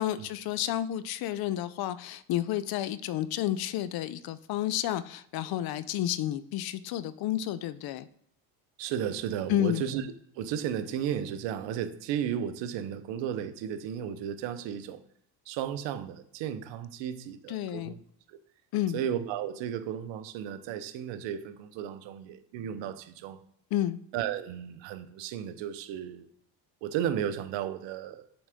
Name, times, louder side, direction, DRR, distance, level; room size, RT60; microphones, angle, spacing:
voice 1, 0.0-8.1 9.5-9.8 17.5-17.9 18.7-19.0 23.7-24.0, left 12 dB, 50° left, 0.5 m, -31 dB
voice 2, 8.8-10.1 10.3-15.0 15.5-18.0 18.9-23.4 24.1-26.3 26.8-28.2, right 9 dB, 65° right, 0.8 m, -34 dB
7.2 x 3.8 x 3.5 m
supercardioid pair, 85°, 48 cm